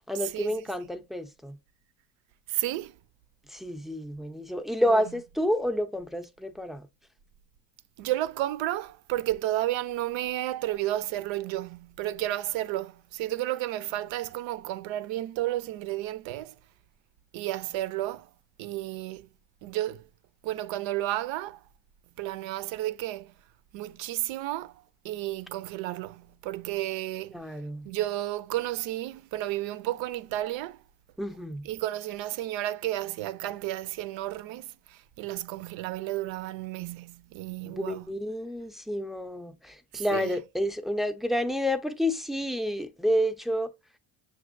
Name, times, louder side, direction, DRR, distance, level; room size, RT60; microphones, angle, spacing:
voice 1, 0.1-1.6 3.5-6.9 27.3-27.9 31.2-31.7 37.6-43.7, equal, ahead, 0.5 m, -29 dB
voice 2, 2.5-3.0 4.9-5.0 8.0-16.6 17.3-18.3 18.6-19.3 19.6-20.1 20.4-21.6 22.2-23.3 23.7-27.4 27.8-30.8 31.6-38.1 39.9-40.4, right 15 dB, 70° right, 0.6 m, -32 dB
6.4 x 2.6 x 2.5 m
supercardioid pair, 70°, 47 cm